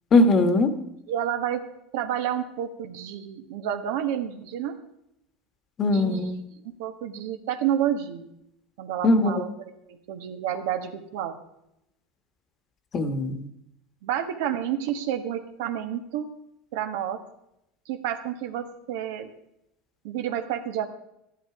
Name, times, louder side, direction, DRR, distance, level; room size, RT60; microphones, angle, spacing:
voice 1, 0.1-0.7 5.8-6.4 9.0-9.3 12.9-13.4, left 2 dB, 35° left, 9 dB, 1.3 m, -20 dB
voice 2, 1.1-1.6 1.9-4.7 5.9-6.3 6.8-8.3 8.8-11.4 14.0-16.3 16.7-17.2 17.9-19.3 20.0-20.9, right 10 dB, 75° right, 7 dB, 1.4 m, -30 dB
13.0 x 11.0 x 4.9 m, 0.82 s
supercardioid pair, 130°, 0 cm